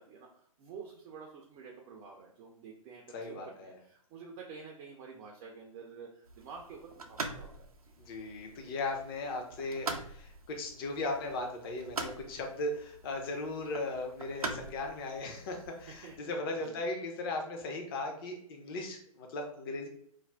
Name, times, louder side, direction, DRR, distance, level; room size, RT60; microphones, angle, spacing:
voice 1, 0.0-7.7 16.0-16.8, right 5 dB, 25° right, -1 dB, 0.4 m, -49 dB
voice 2, 3.1-3.8 8.1-19.9, left 2 dB, 40° left, 2 dB, 0.6 m, -37 dB
sound 1, 6.2-16.2, right 3 dB, 85° right, 0.4 m, -44 dB
2.4 x 2.1 x 3.2 m, 0.65 s
figure-of-eight pair, 120°, 18 cm